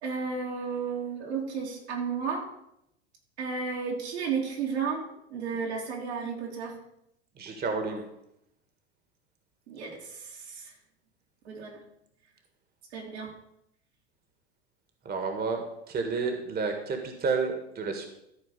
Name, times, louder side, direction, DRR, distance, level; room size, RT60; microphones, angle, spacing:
voice 1, 0.0-2.5 3.4-6.8 9.7-10.7 11.4-11.8 12.9-13.3, right 5 dB, 80° right, -2 dB, 3.2 m, -33 dB
voice 2, 7.4-8.0 15.0-18.1, right 4 dB, 30° right, 5 dB, 1.7 m, -30 dB
13.5 x 4.4 x 6.8 m, 0.80 s
hypercardioid pair, 90°, 33 cm